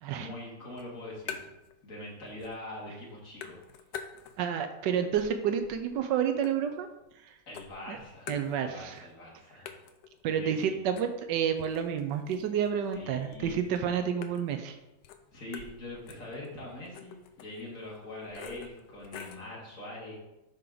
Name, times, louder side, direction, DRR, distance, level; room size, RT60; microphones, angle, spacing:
voice 1, 0.1-1.5 1.8-3.6 7.5-8.3 8.6-9.8 10.3-10.8 12.9-13.6 15.3-20.2, left 1 dB, 50° left, -4 dB, 2.6 m, -43 dB
sound 1, 0.7-1.8 2.1-2.8 3.0-4.6 5.0-7.2 7.5-9.0 9.3-9.4 9.7-19.5, left 7 dB, 80° left, 1.3 m, -47 dB
voice 2, 4.4-6.9 7.2-7.3 7.9-8.0 8.3-9.1 10.2-14.8, right 8 dB, 90° right, 7 dB, 1.3 m, -30 dB
11.0 x 4.5 x 3.9 m, 0.96 s
omnidirectional pair, 1.9 m